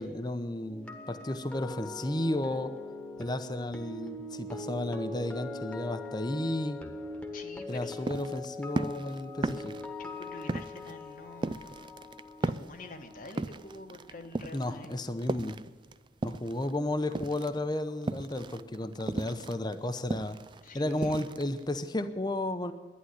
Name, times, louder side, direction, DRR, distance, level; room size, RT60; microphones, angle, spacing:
voice 1, 0.0-2.7 3.2-6.8 7.7-9.7 14.5-15.6 16.2-20.4 20.7-22.7, left 1 dB, 20° left, 9 dB, 0.7 m, -33 dB
sound 1, 0.6-14.7 15.0-15.3, left 2 dB, 5° left, 1.3 m, -42 dB
voice 2, 7.3-8.0 10.0-11.8 12.4-14.9 20.6-21.2, left 2 dB, 45° left, 5 dB, 1.1 m, -47 dB
sound 2, 7.7-16.8 17.0-22.0, right 2 dB, 25° right, 0.3 m, -36 dB
11.5 x 10.0 x 9.5 m, 1.4 s
head